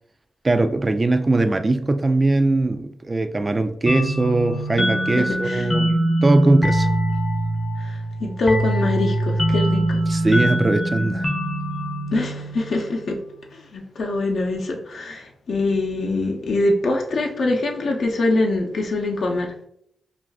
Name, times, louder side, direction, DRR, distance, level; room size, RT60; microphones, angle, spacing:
voice 1, 0.4-5.9 6.2-6.9 10.1-11.3, right 2 dB, 35° right, 0.4 m, -20 dB
sound 1, 3.9-13.2, right 1 dB, 40° left, 0.7 m, -23 dB
voice 2, 5.2-5.7 7.8-10.0 12.1-13.2 13.7-19.7, left 2 dB, 75° left, 0.6 m, -24 dB
2.5 x 2.3 x 3.4 m
supercardioid pair, 40°, 0 cm